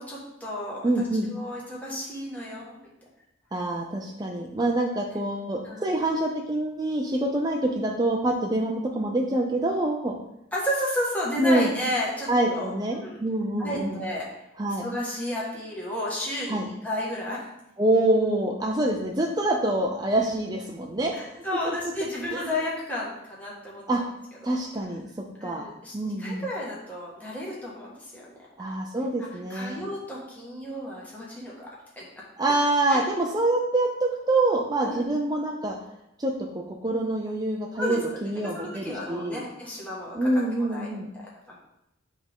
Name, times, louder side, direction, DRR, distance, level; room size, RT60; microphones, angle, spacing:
voice 1, 0.0-0.9 1.3-2.9 5.6-6.0 10.5-12.7 13.0-13.2 13.6-14.3 14.8-17.4 21.1-23.8 24.4-24.6 25.4-28.3 29.5-31.7 31.9-32.0 32.9-33.0 34.8-35.1 37.8-40.3 40.6-40.9 41.1-41.2, left 1 dB, 10° left, -6 dB, 1.5 m, -32 dB
voice 2, 0.8-1.3 3.5-10.1 11.4-11.7 12.3-14.0 14.6-14.8 16.5-16.7 17.8-21.8 22.3-22.4 23.9-24.0 24.4-25.0 25.4-25.7 25.9-26.4 28.6-29.8 32.4-35.8 36.2-39.4 40.1-41.1, right 1 dB, 20° right, 0 dB, 0.5 m, -26 dB
9.5 x 3.7 x 3.6 m, 0.83 s
head